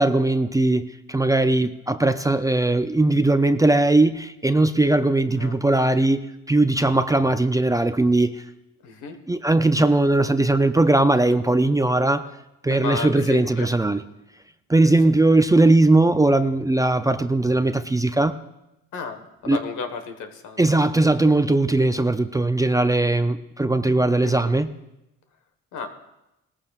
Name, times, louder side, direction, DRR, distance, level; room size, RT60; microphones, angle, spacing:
voice 1, 0.0-8.3 9.3-12.3 12.6-14.0 14.7-18.4 19.5-19.6 20.6-24.7, right 2 dB, 10° right, 10 dB, 0.4 m, -19 dB
voice 2, 8.8-9.1 12.7-13.7 15.3-15.4 18.9-20.6 24.2-24.6 25.7-25.9, left 5 dB, 80° left, 7 dB, 1.5 m, -33 dB
19.0 x 14.5 x 2.4 m, 0.91 s
cardioid pair, 90°, 30 cm